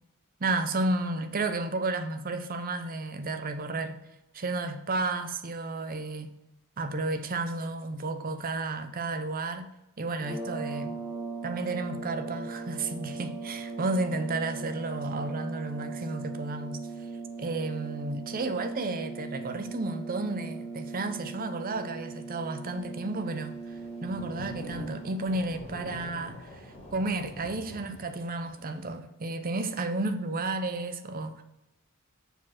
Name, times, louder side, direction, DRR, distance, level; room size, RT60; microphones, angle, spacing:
voice 1, 0.4-4.0 4.3-6.3 6.8-9.7 10.0-11.0 11.4-16.8 17.4-31.4, right 2 dB, 45° right, 0.7 m, -32 dB
sound 1, 10.1-25.3, right 4 dB, 5° left, 2.0 m, -39 dB
Thunder / Rain, 23.4-28.9, left 1 dB, 30° left, 2.4 m, -46 dB
6.8 x 4.9 x 5.9 m
head